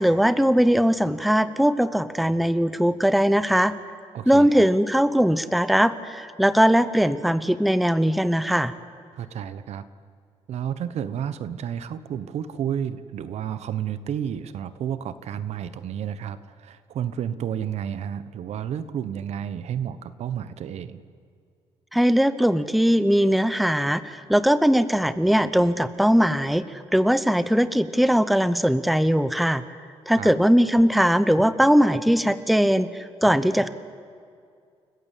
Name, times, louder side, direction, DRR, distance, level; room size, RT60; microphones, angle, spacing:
voice 1, 0.0-3.7 4.3-8.7 21.9-29.6 30.1-33.7, equal, ahead, 13 dB, 0.8 m, -20 dB
voice 2, 4.1-4.7 9.1-9.8 10.5-21.0 30.2-30.3, right 9 dB, 75° right, 13 dB, 1.1 m, -31 dB
29.5 x 15.0 x 8.5 m, 2.3 s
cardioid pair, 120°, 11 cm